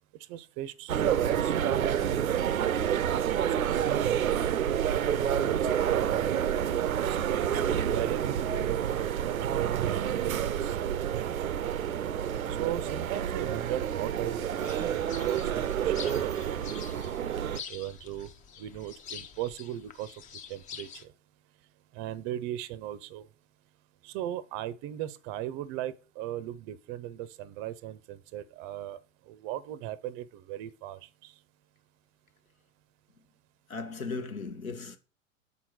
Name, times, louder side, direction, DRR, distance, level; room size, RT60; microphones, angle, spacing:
voice 1, 0.2-3.8 4.7-5.6 5.9-9.9 10.2-11.5 12.6-16.9 17.7-18.3 18.6-20.1 20.5-21.1 21.9-23.3 24.0-29.0 29.3-31.3, right 12 dB, 30° right, 0.5 m, -38 dB
sound 1, 0.9-17.6, right 9 dB, 90° right, 0.5 m, -28 dB
sound 2, 14.6-21.0, left 7 dB, 20° left, 0.5 m, -46 dB
voice 2, 33.7-35.0, left 4 dB, 85° left, 1.1 m, -36 dB
5.4 x 4.5 x 6.2 m
figure-of-eight pair, 95°, 40 cm